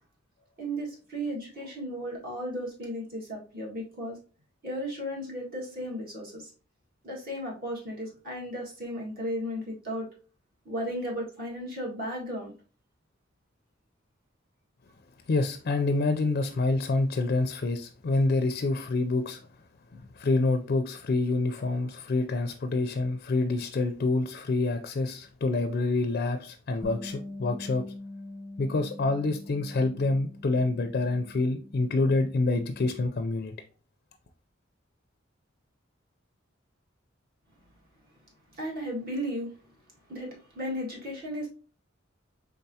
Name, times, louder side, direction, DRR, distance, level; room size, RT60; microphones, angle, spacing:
voice 1, 0.6-4.2 4.6-6.5 7.0-10.1 10.7-12.5 38.5-39.5 40.1-41.5, equal, 50° right, 1.8 m, -35 dB
voice 2, 15.3-19.4 19.9-27.8 28.6-33.5, left 3 dB, 50° left, 0.4 m, -27 dB
Bass guitar, 26.8-33.1, left 2 dB, 10° right, 0.7 m, -44 dB
4.6 x 3.6 x 2.8 m
head